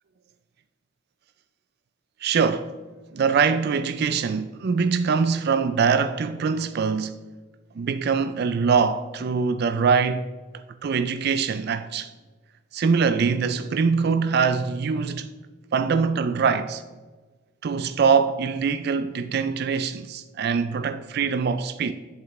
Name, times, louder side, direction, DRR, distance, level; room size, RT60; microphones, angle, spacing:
voice 1, 2.2-2.7 3.1-7.2 7.8-10.3 10.8-12.1 12.7-15.3 15.7-16.8 17.6-21.9, right 5 dB, 50° right, 0.4 m, -23 dB
8.1 x 7.6 x 3.2 m
head